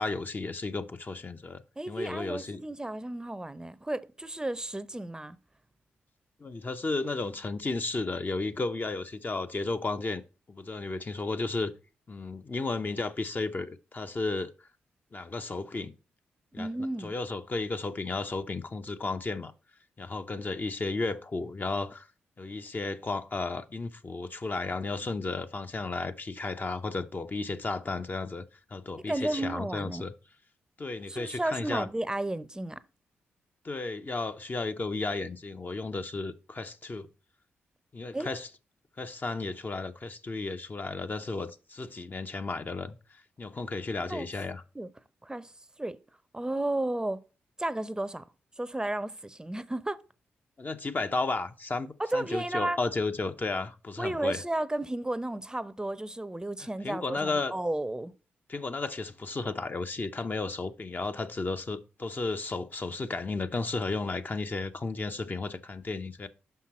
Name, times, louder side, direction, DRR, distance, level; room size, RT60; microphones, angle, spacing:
voice 1, 0.0-2.6 6.4-10.2 10.5-11.7 12.1-14.5 15.1-15.9 16.5-16.7 17.0-19.5 20.0-22.1 22.4-28.5 28.7-30.1 30.8-31.9 33.6-37.1 37.9-38.5 39.0-43.0 43.4-44.6 50.6-54.4 56.8-57.5 58.5-66.3, left 3 dB, 35° left, 0.7 m, -33 dB
voice 2, 1.8-5.4 16.6-17.1 29.1-30.0 31.1-32.8 38.1-38.3 44.1-44.3 44.7-44.9 45.2-45.5 45.8-46.0 46.3-47.2 47.6-48.2 48.6-50.0 52.0-52.8 54.0-58.1, right 1 dB, 15° right, 0.6 m, -33 dB
5.9 x 5.7 x 4.2 m
hypercardioid pair, 40°, 5 cm